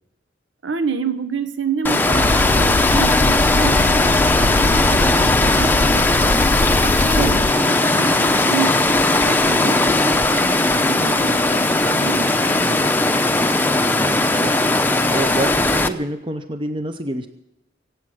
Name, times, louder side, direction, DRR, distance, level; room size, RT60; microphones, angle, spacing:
voice 1, 0.6-6.4 6.8-12.9, right 5 dB, 80° right, 9 dB, 1.2 m, -29 dB
Water, 1.8-15.9, left 2 dB, 10° left, 0.7 m, -18 dB
sound 1, 2.1-7.5, left 2 dB, 60° left, 0.6 m, -22 dB
voice 2, 7.2-7.6 14.0-17.3, right 1 dB, 25° right, 7 dB, 0.7 m, -28 dB
24.0 x 8.5 x 6.3 m, 0.90 s
head